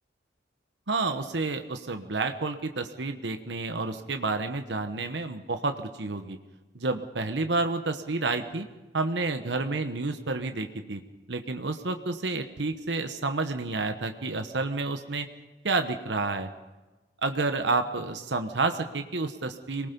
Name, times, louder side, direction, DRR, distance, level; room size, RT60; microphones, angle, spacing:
voice 1, 0.9-6.4 6.7-8.7 8.9-11.0 11.3-15.3 15.6-16.5 17.2-19.9, right 3 dB, 80° right, 7 dB, 1.1 m, -30 dB
26.0 x 19.5 x 5.3 m, 1.2 s
head